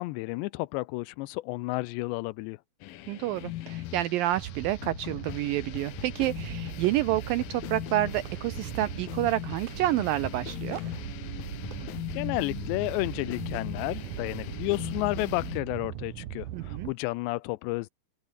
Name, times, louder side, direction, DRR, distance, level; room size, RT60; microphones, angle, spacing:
voice 1, 0.0-2.6 12.1-17.9, left 22 dB, 90° left, 2.9 m, -31 dB
sound 1, 2.8-15.6, left 15 dB, 70° left, 2.4 m, -39 dB
voice 2, 3.1-10.8 16.5-16.9, right 15 dB, 85° right, 2.0 m, -29 dB
sound 2, 4.3-16.9, right 12 dB, 60° right, 2.2 m, -40 dB
open air
omnidirectional pair, 4.9 m